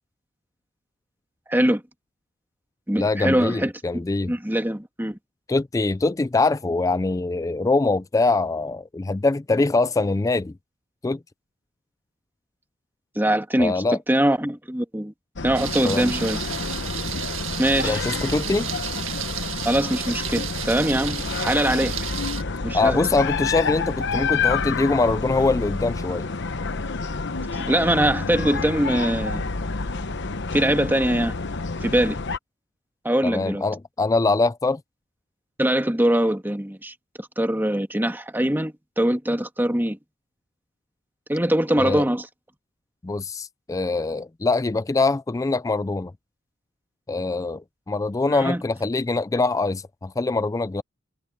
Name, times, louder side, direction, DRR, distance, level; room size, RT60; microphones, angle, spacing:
voice 1, 1.5-1.8 2.9-5.2 13.2-13.7 14.1-15.1 15.4-16.4 17.6-18.0 19.6-21.9 22.6-23.0 27.5-29.5 30.5-31.4 31.8-32.2 33.0-33.6 35.6-40.0 41.3-42.3 48.3-48.6, right 1 dB, 10° right, 1.7 m, -22 dB
voice 2, 3.0-4.3 5.5-10.5 11.0-11.2 13.6-14.0 15.8-16.1 17.8-18.7 22.7-26.3 33.2-34.8 41.8-42.0 43.0-46.1 47.1-50.8, left 3 dB, 15° left, 0.3 m, -23 dB
sound 1, 15.4-32.4, left 4 dB, 60° left, 1.0 m, -29 dB
Thunder, 15.5-22.4, right 11 dB, 80° right, 1.9 m, -33 dB
head